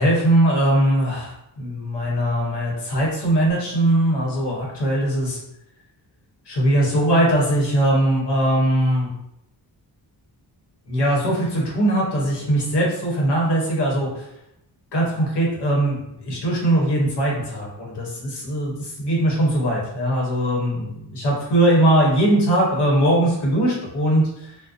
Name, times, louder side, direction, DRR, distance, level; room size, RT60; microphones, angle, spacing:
voice 1, 0.0-5.4 6.5-9.1 10.9-14.2 14.9-24.6, right 1 dB, 65° left, -3 dB, 0.9 m, -20 dB
2.4 x 2.1 x 2.4 m, 0.81 s
wide cardioid pair, 155°, 43 cm